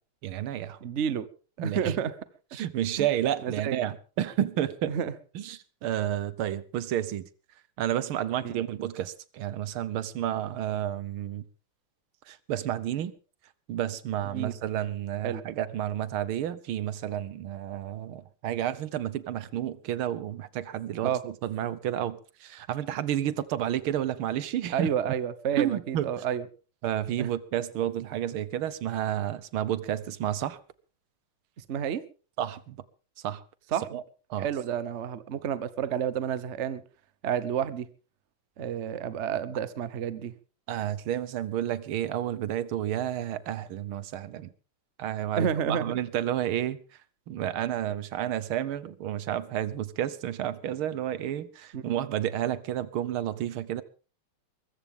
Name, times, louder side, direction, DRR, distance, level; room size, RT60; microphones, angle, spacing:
voice 1, 0.2-0.8 1.6-2.1 2.5-5.0 5.4-7.2 7.8-11.4 12.3-13.1 13.7-24.9 25.6-26.2 26.8-30.6 32.4-32.8 33.2-33.4 33.9-34.0 34.3-34.5 40.7-44.5 45.0-46.8 47.3-53.8, right 11 dB, 75° right, 1.7 m, -31 dB
voice 2, 0.8-1.3 1.6-2.1 3.0-3.1 3.4-3.8 4.9-5.1 8.4-8.5 14.3-14.5 15.2-15.4 21.0-21.2 24.7-26.5 27.2-27.3 31.7-32.0 33.7-34.0 34.4-36.8 37.2-37.9 38.6-40.3 45.4-46.0 51.7-52.0, right 8 dB, 45° right, 0.9 m, -30 dB
22.0 x 14.5 x 3.6 m
omnidirectional pair, 2.4 m